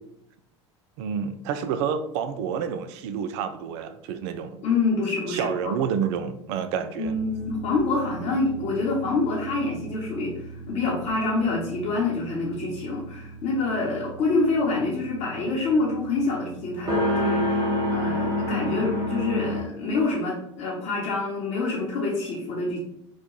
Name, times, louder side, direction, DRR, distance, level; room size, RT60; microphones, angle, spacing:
voice 1, 1.0-4.6 5.3-7.2, right 7 dB, 65° right, 0.4 m, -29 dB
voice 2, 4.6-5.7 7.0-17.6 17.9-22.8, left 3 dB, 55° left, 1.0 m, -26 dB
sound 1, 7.0-19.6, left 1 dB, 30° right, 1.2 m, -31 dB
3.0 x 2.2 x 3.8 m
hypercardioid pair, 75°, 16 cm